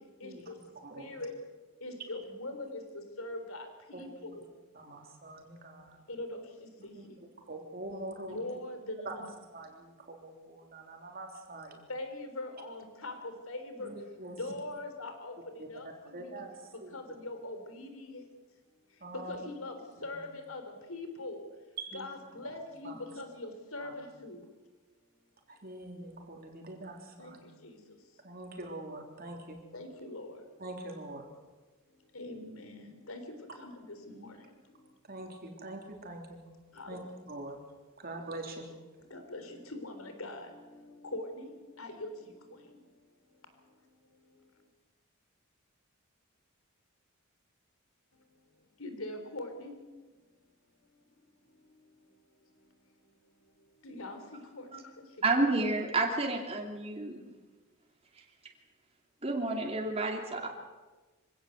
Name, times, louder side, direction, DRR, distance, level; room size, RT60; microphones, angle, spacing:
voice 1, 0.0-1.4 1.8-4.5 6.1-7.3 8.3-9.2 11.9-16.4 16.7-18.3 18.9-21.5 21.9-24.5 27.2-28.3 29.7-30.6 31.9-35.3 36.7-37.1 38.0-38.2 39.0-44.7 48.1-48.5 48.8-49.8 50.8-55.2, left 2 dB, 80° left, 7 dB, 3.8 m, -44 dB
voice 2, 0.7-1.1 3.9-4.1 4.7-6.0 7.0-7.1 7.5-8.4 9.0-9.1 9.5-11.8 13.8-14.4 15.6-15.7 16.1-16.5 16.8-16.9 19.0-19.3 20.1-20.2 21.8-22.1 22.8-23.0 23.8-23.9 25.6-27.4 28.2-29.6 30.6-31.2 35.1-36.4 36.9-37.0 37.3-37.6 38.0-38.7, right 2 dB, 45° right, 2 dB, 3.4 m, -43 dB
voice 3, 55.2-57.2 59.2-60.5, right 2 dB, 30° right, 1 dB, 2.9 m, -30 dB
25.0 x 17.0 x 8.0 m, 1.3 s
head